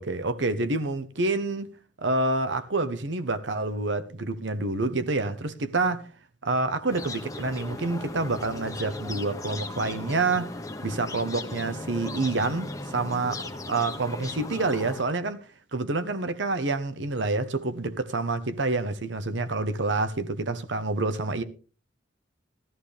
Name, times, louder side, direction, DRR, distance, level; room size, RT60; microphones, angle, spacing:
voice 1, 0.0-1.7 2.0-6.0 6.4-10.5 10.8-21.4, right 3 dB, 80° right, 1.1 m, -28 dB
sound 1, 6.9-15.0, left 2 dB, 20° left, 1.1 m, -37 dB
14.0 x 13.0 x 3.4 m
head